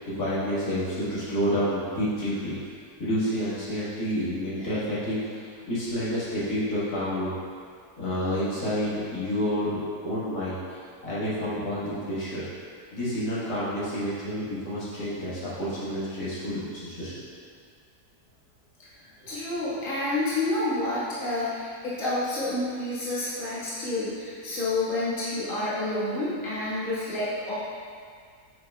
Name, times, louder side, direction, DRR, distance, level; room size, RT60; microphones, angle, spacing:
voice 1, 0.2-2.5 3.0-7.3 8.0-10.6 11.0-12.4 12.9-17.1, equal, 85° left, -11 dB, 2.3 m, -29 dB
voice 2, 19.3-27.5, left 2 dB, 60° left, -11 dB, 2.1 m, -29 dB
8.8 x 5.7 x 2.4 m, 2.1 s
omnidirectional pair, 1.6 m